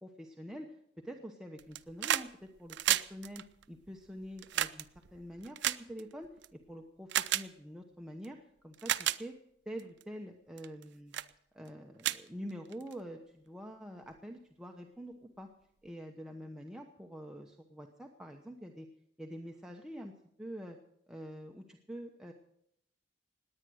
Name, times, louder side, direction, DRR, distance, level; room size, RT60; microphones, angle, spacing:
voice 1, 0.0-2.3 2.6-8.4 8.6-9.4 9.7-11.1 11.5-15.5 15.8-18.9 19.2-20.1 20.4-20.8 21.1-22.3, equal, 5° right, 1 dB, 1.0 m, -46 dB
sound 1, 1.6-2.3 2.6-6.5 7.1-7.5 8.2-8.3 8.7-9.2 9.8-10.0 10.6-10.8 11.1-11.3 11.7-11.8 12.0-12.9 14.1-14.2, right 12 dB, 65° right, 0.5 m, -33 dB
19.5 x 9.2 x 6.3 m, 0.73 s
head